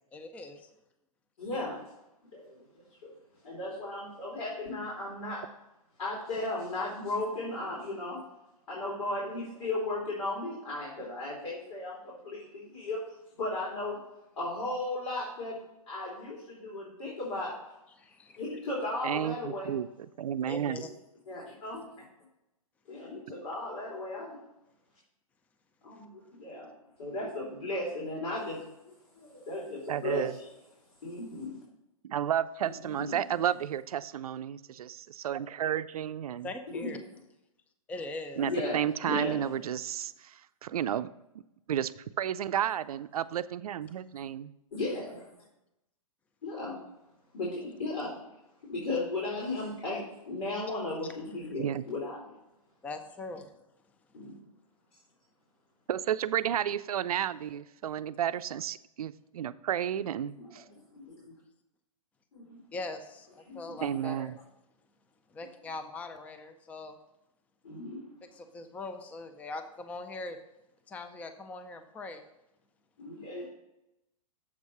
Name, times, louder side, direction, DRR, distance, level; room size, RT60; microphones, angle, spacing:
voice 1, 0.1-0.7 18.0-18.4 20.4-20.9 36.4-37.0 37.9-38.4 51.0-51.1 52.8-53.6 62.7-64.3 65.3-67.0 68.3-70.4 70.9-72.2, left 2 dB, 10° left, 8 dB, 0.4 m, -41 dB
voice 2, 1.4-1.8 2.3-3.1 3.4-5.5 6.0-8.2 8.7-13.0 13.3-14.0 14.4-15.6 15.9-17.6 18.3-19.7 21.3-21.9 22.9-24.4 25.8-26.7 27.0-28.7 29.2-30.5 31.0-31.6 32.6-33.2 36.7-36.9 38.4-39.4 44.7-45.4 46.4-46.8 47.3-48.2 48.7-52.3 54.1-54.4 60.4-60.5 60.9-61.3 62.3-62.6 63.5-64.0 67.6-68.1 73.0-73.5, left 2 dB, 75° left, -4 dB, 3.2 m, -36 dB
voice 3, 19.0-19.9 20.2-20.8 29.9-30.3 32.0-36.5 38.4-41.1 41.7-41.9 42.2-44.5 51.6-51.8 55.9-60.6 63.8-64.3, right 10 dB, 80° right, 14 dB, 0.4 m, -32 dB
7.3 x 4.7 x 5.5 m, 0.90 s
hypercardioid pair, 130°, 19 cm